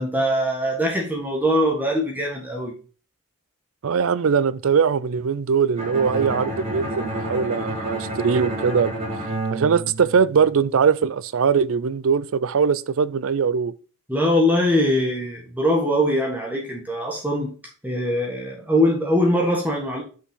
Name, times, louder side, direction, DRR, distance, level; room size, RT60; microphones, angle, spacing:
voice 1, 0.0-2.7 14.1-17.5 17.8-20.0, equal, 10° right, 1.5 m, -22 dB
voice 2, 3.8-8.9 9.5-13.7, right 6 dB, 70° right, 0.5 m, -21 dB
Bowed string instrument, 5.8-10.7, right 1 dB, 30° right, 3.0 m, -30 dB
6.5 x 5.4 x 3.8 m
head